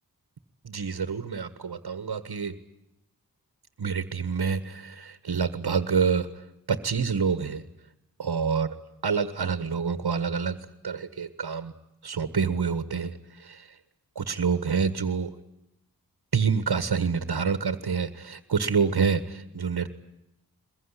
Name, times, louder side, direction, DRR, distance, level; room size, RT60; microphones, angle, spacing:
voice 1, 0.6-2.6 3.8-7.6 8.2-8.7 9.0-11.7 12.0-13.8 14.1-15.3 16.3-19.9, right 6 dB, 75° right, 12 dB, 1.6 m, -27 dB
23.0 x 22.0 x 10.0 m, 0.88 s
wide cardioid pair, 75°, 38 cm